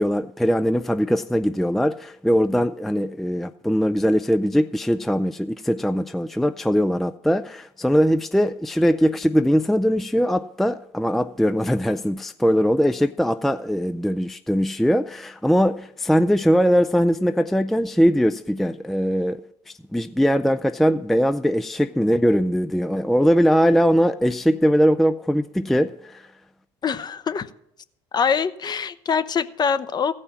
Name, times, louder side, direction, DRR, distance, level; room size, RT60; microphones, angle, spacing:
voice 1, 0.0-19.4 19.9-26.3, equal, ahead, 0.3 m, -21 dB
voice 2, 26.8-27.5 28.1-30.1, left 6 dB, 30° left, 0.7 m, -24 dB
15.0 x 5.5 x 7.2 m
supercardioid pair, 80°, 14 cm